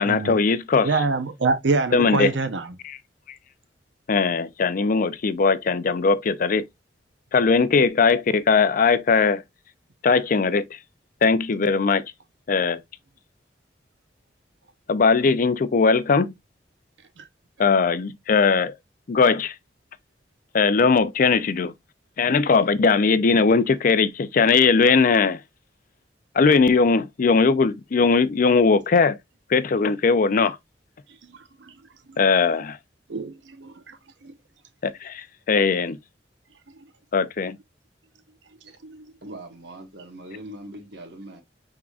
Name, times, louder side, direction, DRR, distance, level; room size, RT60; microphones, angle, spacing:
voice 1, 0.0-0.9 1.9-2.3 2.8-3.0 4.1-6.7 7.3-9.4 10.0-10.8 11.2-12.0 12.5-12.8 14.9-16.3 17.6-18.8 19.1-19.5 20.5-21.7 22.2-25.4 26.4-29.2 29.5-30.6 32.2-32.8 34.8-36.0 37.1-37.6, left 4 dB, 50° left, 0.4 m, -19 dB
voice 2, 0.8-2.7 17.2-17.3 33.1-34.0 34.2-34.3 38.8-39.1, right 3 dB, 85° right, 0.7 m, -25 dB
voice 3, 39.2-41.4, right 1 dB, 65° right, 1.4 m, -41 dB
6.0 x 3.6 x 2.4 m
head